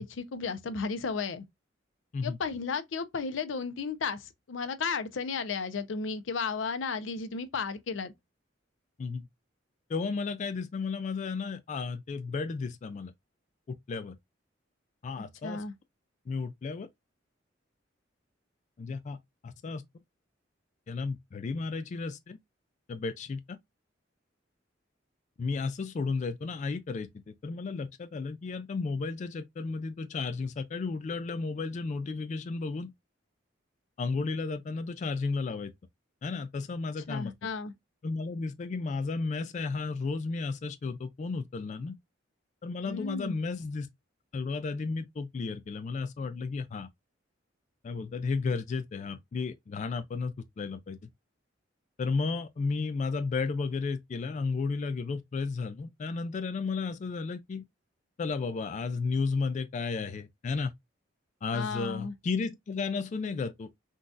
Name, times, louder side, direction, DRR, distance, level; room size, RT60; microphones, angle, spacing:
voice 1, 0.0-1.5 2.2-8.1 15.2-15.7 37.1-37.7 42.9-43.4 61.5-62.1, left 5 dB, 90° left, 0.5 m, -34 dB
voice 2, 9.9-13.1 13.7-14.2 15.0-15.6 16.3-16.9 18.8-19.2 19.4-19.8 20.9-22.4 22.9-23.6 25.4-32.9 34.0-35.7 36.2-37.3 38.0-42.0 42.6-43.9 44.3-46.9 47.8-51.0 52.0-57.6 58.2-60.7 61.4-63.8, left 4 dB, 40° left, 0.3 m, -33 dB
3.8 x 2.3 x 2.5 m
head